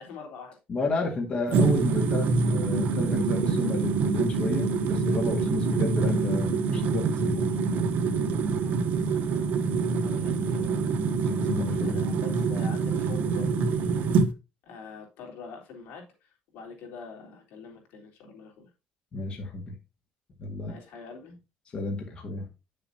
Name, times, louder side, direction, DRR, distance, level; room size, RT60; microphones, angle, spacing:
voice 1, 0.0-0.6 8.6-9.3 9.7-10.9 11.8-14.2 14.6-18.7 20.7-21.4, left 5 dB, 85° left, 3.3 m, -45 dB
voice 2, 0.7-7.5 11.3-12.0 19.1-19.7 20.4-20.8 21.7-22.4, left 3 dB, 35° left, 1.9 m, -32 dB
sound 1, 1.5-14.3, right 4 dB, 60° right, 1.2 m, -25 dB
9.7 x 6.8 x 2.8 m
cardioid pair, 160°, 3 cm